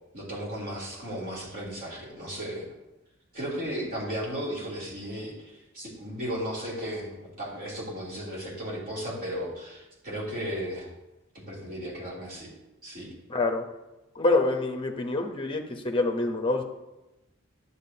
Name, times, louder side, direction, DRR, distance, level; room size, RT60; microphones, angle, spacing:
voice 1, 0.1-2.7 3.3-10.9 11.3-12.5 12.8-13.1, equal, 45° right, -6 dB, 2.8 m, -35 dB
voice 2, 13.3-13.6 14.2-16.6, left 2 dB, 25° left, 3 dB, 0.7 m, -26 dB
10.0 x 6.9 x 2.8 m, 0.99 s
head